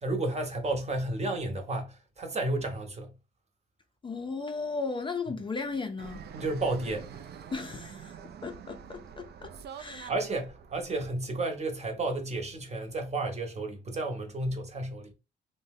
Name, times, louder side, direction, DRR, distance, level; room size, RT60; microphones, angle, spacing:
voice 1, 0.0-3.1 6.3-7.1 9.7-15.1, right 2 dB, 35° right, 0.8 m, -32 dB
voice 2, 4.0-6.2 7.5-10.1, left 4 dB, 25° left, 0.4 m, -36 dB
Fixed-wing aircraft airplane, 6.0-11.1, right 7 dB, 55° right, 0.4 m, -46 dB
2.7 x 2.1 x 3.5 m
cardioid pair, 90°, 20 cm